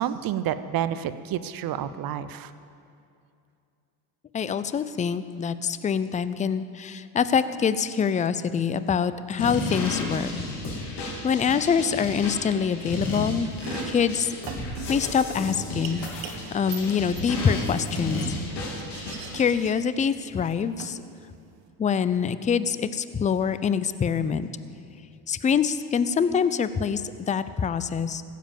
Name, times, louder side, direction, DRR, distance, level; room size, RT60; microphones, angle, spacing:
voice 1, 0.0-2.5, right 10 dB, 45° right, 13 dB, 0.7 m, -29 dB
voice 2, 4.3-10.3 10.9-13.5 13.8-14.3 14.9-18.4 18.7-18.8 19.3-21.0 21.8-24.5 25.3-28.2, left 6 dB, 15° left, 14 dB, 0.4 m, -25 dB
sound 1, 9.4-19.5, left 2 dB, 55° left, 3.3 m, -33 dB
Domestic sounds home sounds, 13.4-21.7, right 8 dB, 65° right, 1.3 m, -43 dB
15.5 x 7.6 x 7.2 m, 2.5 s
supercardioid pair, 90°, 49 cm